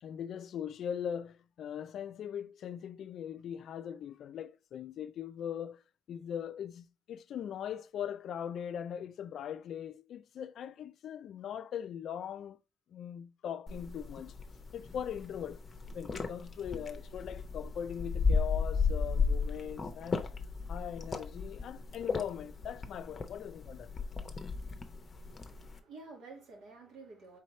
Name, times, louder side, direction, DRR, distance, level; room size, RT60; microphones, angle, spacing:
voice 1, 0.0-5.8 6.1-12.6 12.9-14.4 14.7-15.6 15.9-20.3 20.7-23.9, left 9 dB, 70° left, 0.4 m, -40 dB
sound 1, 13.7-25.8, left 4 dB, 35° left, 0.7 m, -35 dB
voice 2, 25.2-27.4, right 3 dB, 80° right, 1.8 m, -51 dB
4.3 x 3.9 x 3.1 m
cardioid pair, 90°, 0 cm